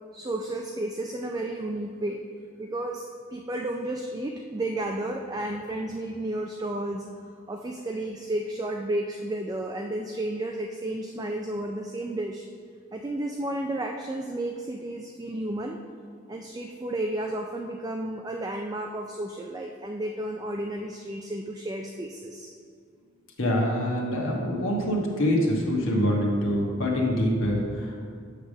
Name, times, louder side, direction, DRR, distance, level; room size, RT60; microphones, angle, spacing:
voice 1, 0.1-2.3 2.6-7.0 7.5-12.5 12.9-15.8 16.3-22.5, right 1 dB, 20° right, 2 dB, 0.3 m, -32 dB
voice 2, 23.4-28.0, equal, 85° left, -2 dB, 1.3 m, -25 dB
8.1 x 3.4 x 6.2 m, 2.2 s
head